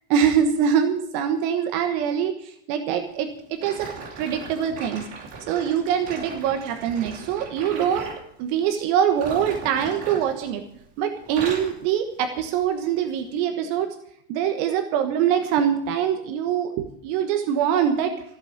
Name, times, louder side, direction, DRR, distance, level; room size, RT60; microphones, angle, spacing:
voice 1, 0.1-3.9 4.2-5.1 5.5-8.1 8.4-10.7 11.0-14.0 14.3-18.2, right 8 dB, 85° right, 5 dB, 4.1 m, -24 dB
sound 1, 3.6-8.3 9.1-10.9 11.2-11.8 12.4-12.6 13.3-13.4, right 4 dB, 60° right, 4.8 m, -38 dB
14.5 x 11.5 x 6.6 m, 0.68 s
omnidirectional pair, 5.9 m